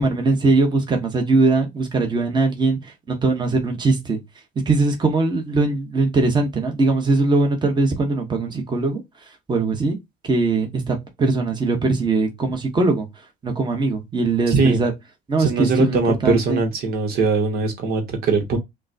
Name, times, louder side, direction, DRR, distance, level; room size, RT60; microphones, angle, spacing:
voice 1, 0.0-2.8 3.1-4.2 4.7-9.0 9.5-10.0 10.2-13.1 13.4-14.9 15.3-16.0 16.2-16.6, right 3 dB, 25° right, 1.2 m, -20 dB
voice 2, 14.5-14.8 15.4-18.6, right 4 dB, 65° right, 1.2 m, -21 dB
5.7 x 2.3 x 2.7 m
cardioid pair, 110°, 17 cm